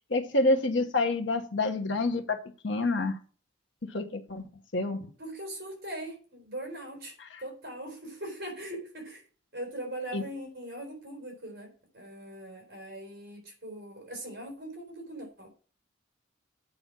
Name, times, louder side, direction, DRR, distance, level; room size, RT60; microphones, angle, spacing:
voice 1, 0.1-3.2 3.8-4.4 4.7-5.1 7.3-7.4 10.1-10.2, left 2 dB, 65° left, 1.1 m, -28 dB
voice 2, 5.2-7.2 7.4-9.2 9.5-15.5, right 1 dB, 50° right, 4.0 m, -40 dB
8.8 x 5.0 x 7.4 m
head